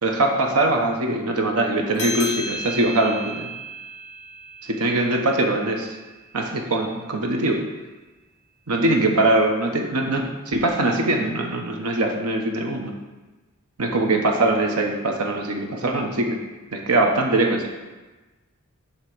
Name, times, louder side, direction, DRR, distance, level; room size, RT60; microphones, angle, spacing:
voice 1, 0.0-3.5 4.7-6.0 6.3-7.6 8.7-12.9 13.8-16.4 16.7-17.7, right 2 dB, 85° right, 2 dB, 0.9 m, -22 dB
sound 1, 2.0-6.9, equal, 75° left, 1.0 m, -35 dB
7.9 x 3.0 x 6.0 m, 1.2 s
head